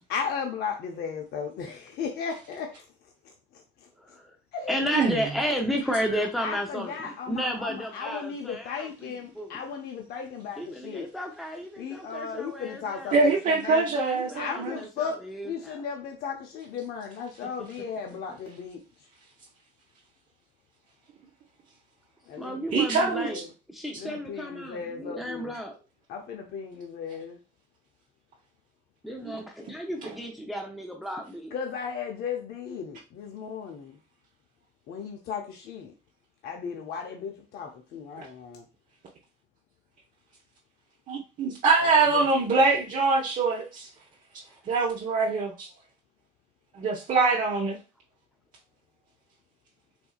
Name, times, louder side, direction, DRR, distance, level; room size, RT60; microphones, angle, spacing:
voice 1, 0.1-4.2 4.5-4.9 5.9-11.1 11.8-13.9 14.3-19.1 22.3-23.5 24.0-25.5 26.1-27.4 31.5-34.0 34.9-35.9 36.4-38.7, left 6 dB, 70° left, 0.6 m, -36 dB
voice 2, 4.0-4.4 4.7-9.6 10.6-13.2 13.9-15.8 22.4-23.4 23.7-25.8 29.0-31.5 44.4-44.5, equal, ahead, 0.6 m, -33 dB
voice 3, 13.1-14.8 22.7-23.3 29.3-29.4 38.2-38.3 41.1-43.9 44.6-45.7 46.7-47.8, right 3 dB, 50° right, 0.9 m, -24 dB
4.3 x 2.6 x 2.3 m
cardioid pair, 110°, 17 cm